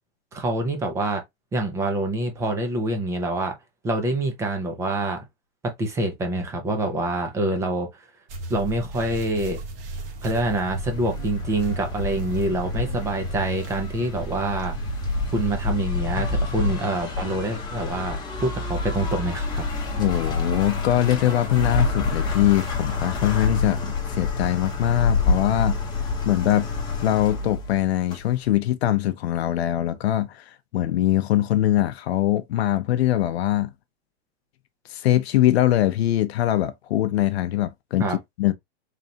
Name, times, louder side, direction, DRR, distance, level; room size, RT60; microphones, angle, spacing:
voice 1, 0.3-1.2 1.5-3.6 3.8-5.2 5.6-7.9 8.5-9.6 10.2-14.7 15.3-18.2 18.4-19.6 38.0-38.2, right 2 dB, 10° right, 0.5 m, -26 dB
sound 1, 8.3-15.7, right 2 dB, 55° right, 1.6 m, -35 dB
sound 2, 10.3-28.5, left 3 dB, 15° left, 1.0 m, -28 dB
voice 2, 20.0-25.9 26.2-26.7 27.0-33.7 34.9-38.5, left 13 dB, 70° left, 0.6 m, -22 dB
4.0 x 3.3 x 2.7 m
supercardioid pair, 165°, 33 cm